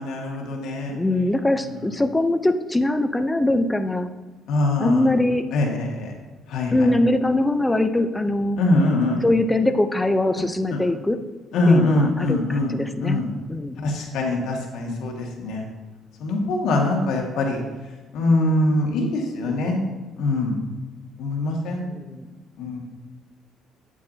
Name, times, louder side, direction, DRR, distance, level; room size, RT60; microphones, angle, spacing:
voice 1, 0.0-1.0 4.5-5.1 5.5-6.1 6.5-6.7 8.6-9.3 10.7-10.8 11.5-12.7 13.0-13.3 13.8-15.6 16.2-17.6 18.1-19.8 20.2-20.6 21.2-21.9 22.6-22.8, left 2 dB, 75° left, 0 dB, 1.8 m, -22 dB
voice 2, 0.9-4.1 4.8-5.5 6.7-8.6 9.2-11.2 11.7-13.8 21.8-22.2, left 1 dB, 10° left, 9 dB, 0.6 m, -22 dB
8.7 x 8.3 x 2.8 m, 1.3 s
cardioid pair, 110°, 0 cm